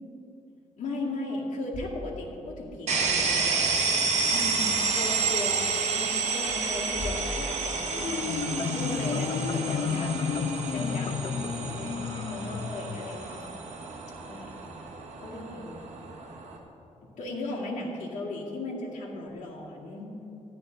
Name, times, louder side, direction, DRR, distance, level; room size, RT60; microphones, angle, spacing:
voice 1, 0.8-3.6 4.2-13.4 14.3-14.5 15.2-15.9 17.2-20.1, left 2 dB, 75° left, -4 dB, 2.2 m, -37 dB
sound 1, 1.7-2.7 3.0-3.1 6.3-8.4, left 2 dB, 25° left, 0.9 m, -40 dB
sound 2, 2.9-16.6, right 4 dB, 65° right, 1.3 m, -30 dB
Marimba xylophone, 7.9-13.5, left 6 dB, 45° left, 0.4 m, -31 dB
13.0 x 11.0 x 3.9 m, 3.0 s
wide cardioid pair, 165°, 13 cm